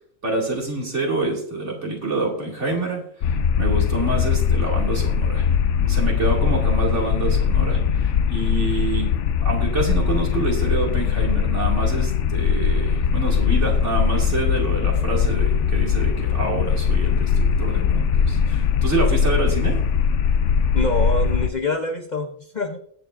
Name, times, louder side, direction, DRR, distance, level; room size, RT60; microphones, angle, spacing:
voice 1, 0.2-5.5 5.8-9.1 9.4-19.8, right 2 dB, 60° right, -1 dB, 2.8 m, -27 dB
sound 1, 3.2-21.5, left 7 dB, 70° left, 0.9 m, -20 dB
voice 2, 20.7-22.8, left 3 dB, 40° left, 5 dB, 0.8 m, -25 dB
20.0 x 7.0 x 2.5 m, 0.63 s
omnidirectional pair, 1.4 m